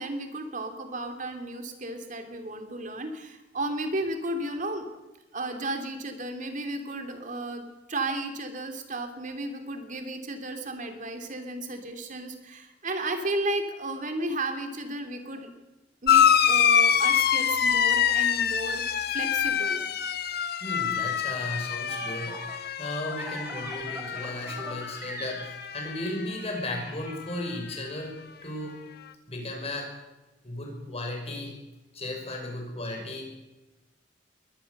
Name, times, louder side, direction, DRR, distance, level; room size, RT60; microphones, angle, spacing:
voice 1, 0.0-4.9 5.3-15.5 16.0-19.9, right 2 dB, 45° right, 6 dB, 2.8 m, -34 dB
sound 1, 16.1-25.1 25.4-26.1 27.2-27.3, left 8 dB, 60° left, 1.1 m, -25 dB
voice 2, 20.6-22.4 22.8-28.8 29.3-29.9 30.4-31.5 31.9-33.3, left 1 dB, 35° left, 1 dB, 5.9 m, -35 dB
sound 2, 21.4-27.1, right 1 dB, 10° right, 4.5 m, -42 dB
22.0 x 18.0 x 6.6 m, 1.1 s
head